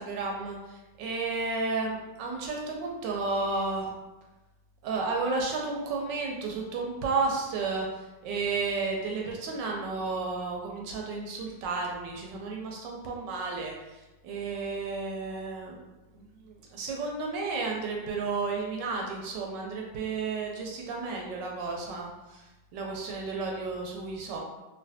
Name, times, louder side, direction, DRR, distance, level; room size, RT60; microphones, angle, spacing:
voice 1, 0.0-3.9 4.8-7.9 8.2-13.7 14.2-15.8 16.1-22.1 22.7-24.4, right 3 dB, 75° right, 0 dB, 1.1 m, -32 dB
3.2 x 2.5 x 2.6 m, 1.1 s
omnidirectional pair, 2.1 m